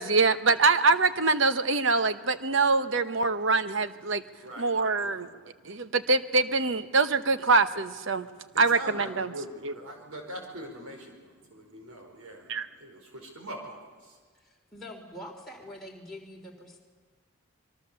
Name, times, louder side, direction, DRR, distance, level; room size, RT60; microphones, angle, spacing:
voice 1, 0.0-4.2 4.6-5.3 5.6-8.3 8.6-9.3 9.6-9.7 12.5-12.7, right 3 dB, 60° right, 11 dB, 0.9 m, -24 dB
voice 2, 4.4-4.8 5.0-5.3 8.5-12.4 12.8-13.8, right 1 dB, 85° right, 3 dB, 4.9 m, -42 dB
voice 3, 14.4-16.8, left 1 dB, ahead, -3 dB, 3.4 m, -44 dB
25.5 x 22.5 x 6.9 m, 1.5 s
head